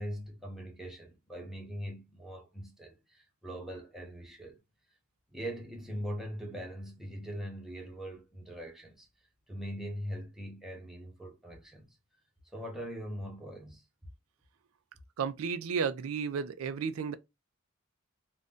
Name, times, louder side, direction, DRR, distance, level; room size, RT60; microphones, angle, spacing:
voice 1, 0.0-4.6 5.3-9.1 9.5-12.0 12.5-13.8, equal, ahead, 0.7 m, -41 dB
voice 2, 15.2-17.1, right 6 dB, 80° right, 0.4 m, -33 dB
2.6 x 2.2 x 3.5 m
head